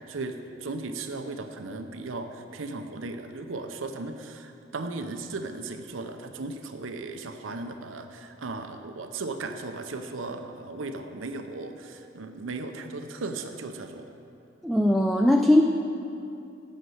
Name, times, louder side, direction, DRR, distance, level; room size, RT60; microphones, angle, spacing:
voice 1, 0.1-14.1, right 3 dB, 90° right, 6 dB, 0.7 m, -36 dB
voice 2, 14.6-15.6, left 1 dB, ahead, 3 dB, 0.4 m, -19 dB
11.5 x 6.6 x 7.9 m, 2.7 s
head